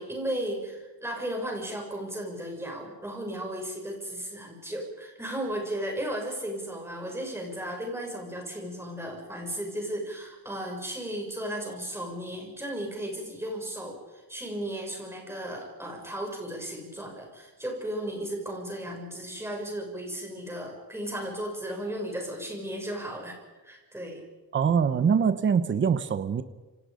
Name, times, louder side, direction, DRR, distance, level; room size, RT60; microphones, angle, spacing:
voice 1, 0.0-24.2, right 1 dB, 5° right, 1 dB, 6.8 m, -35 dB
voice 2, 24.5-26.4, right 6 dB, 30° right, 12 dB, 1.0 m, -23 dB
28.0 x 25.0 x 5.2 m, 1.2 s
cardioid pair, 180°, 37 cm